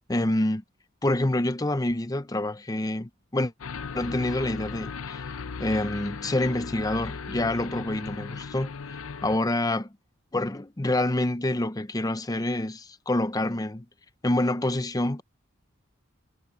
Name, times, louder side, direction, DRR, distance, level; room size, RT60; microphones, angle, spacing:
voice 1, 0.1-0.6 1.0-3.5 3.9-5.2 5.6-8.7 9.2-9.9 10.3-13.9 14.2-15.2, left 1 dB, 15° left, 0.7 m, -27 dB
sound 1, 3.6-9.4, left 5 dB, 80° left, 0.8 m, -37 dB
head